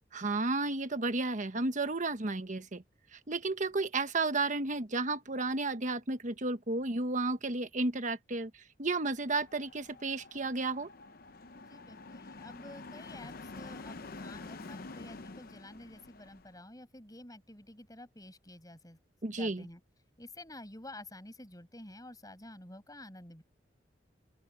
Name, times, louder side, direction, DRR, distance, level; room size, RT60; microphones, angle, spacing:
voice 1, 0.1-2.8 3.1-10.9 19.2-19.6, right 3 dB, 45° right, 1.2 m, -32 dB
sound 1, 9.1-16.5, left 3 dB, 55° left, 0.8 m, -48 dB
voice 2, 11.5-19.0 19.3-19.8 20.2-23.4, left 1 dB, 20° left, 7.6 m, -50 dB
open air
head